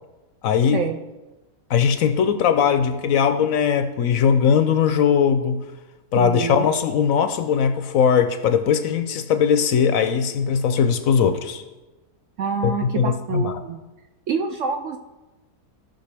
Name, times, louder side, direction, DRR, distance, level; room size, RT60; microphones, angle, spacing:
voice 1, 0.4-0.9 1.7-5.6 6.1-11.6 12.6-13.6, left 7 dB, 70° left, 9 dB, 0.9 m, -20 dB
voice 2, 6.1-6.7 12.4-13.8 14.3-15.0, right 6 dB, 70° right, 6 dB, 0.7 m, -26 dB
15.5 x 5.8 x 3.4 m, 1.1 s
omnidirectional pair, 1.7 m